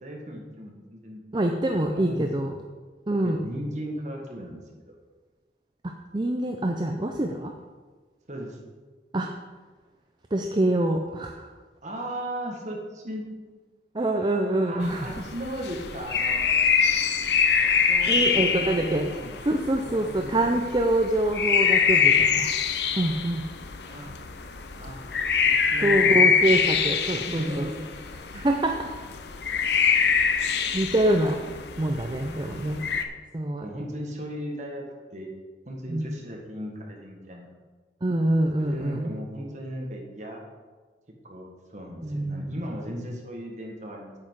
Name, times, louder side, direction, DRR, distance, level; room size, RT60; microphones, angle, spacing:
voice 1, 0.0-1.2 1.9-2.6 3.2-4.9 8.3-8.6 11.8-13.2 14.7-16.5 17.9-19.4 19.8-20.6 22.1-22.4 22.9-23.2 23.8-24.1 24.8-25.0 25.4-26.4 27.2-27.8 32.4-32.9 33.6-34.8 35.1-35.3 35.6-37.5 38.6-40.4 41.2-44.1, equal, 45° right, 0 dB, 1.7 m, -37 dB
voice 2, 1.3-2.5 3.1-3.4 5.8-7.5 9.1-9.3 10.3-11.5 13.9-15.1 17.6-19.1 19.4-22.5 23.0-23.4 25.8-27.7 28.3-28.9 29.6-29.9 30.7-31.4 31.8-32.8 33.3-33.6 35.9-36.1 38.0-39.1 42.0-42.5, right 1 dB, 25° right, 3 dB, 0.5 m, -25 dB
sound 1, 14.8-33.0, left 6 dB, 75° left, 0.7 m, -25 dB
8.7 x 7.9 x 4.8 m, 1.4 s
head